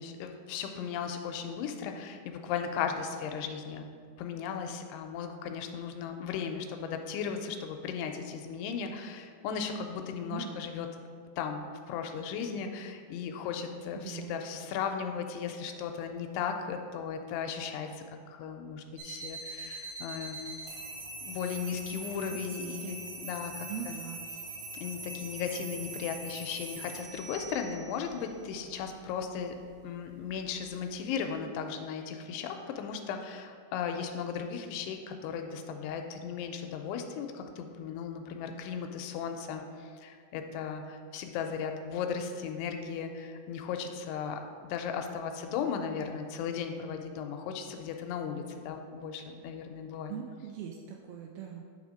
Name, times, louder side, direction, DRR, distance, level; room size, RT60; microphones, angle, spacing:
voice 1, 0.0-3.9 4.2-10.9 11.4-18.0 18.3-20.4 21.2-23.0 23.2-24.0 24.8-29.5 29.8-50.1, left 7 dB, 85° left, 5 dB, 2.6 m, -36 dB
voice 2, 10.3-10.7 14.0-14.7 22.3-22.9 23.7-24.2 50.1-51.7, right 8 dB, 85° right, 1 dB, 2.2 m, -41 dB
sound 1, 19.0-31.0, right 2 dB, 65° right, 1.8 m, -43 dB
9.2 x 3.5 x 5.0 m, 2.1 s
omnidirectional pair, 4.8 m